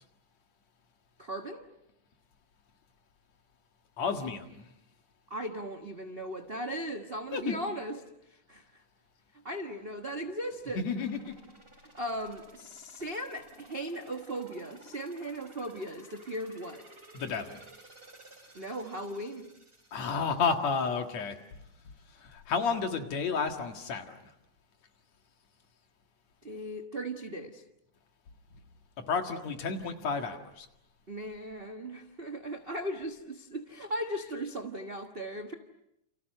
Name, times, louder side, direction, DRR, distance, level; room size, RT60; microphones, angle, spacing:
voice 1, 1.2-1.7 5.3-8.8 9.3-10.9 11.9-16.9 18.5-19.5 26.4-27.6 31.1-35.5, right 1 dB, 50° right, 4 dB, 0.6 m, -38 dB
voice 2, 4.0-4.7 7.3-7.5 10.8-11.3 17.1-17.6 19.9-21.4 22.2-24.1 29.1-30.7, left 5 dB, 60° left, 5 dB, 3.0 m, -31 dB
sound 1, 10.9-21.6 22.0-22.1, right 1 dB, 15° right, 3.8 m, -55 dB
29.5 x 29.5 x 6.6 m, 0.80 s
omnidirectional pair, 3.6 m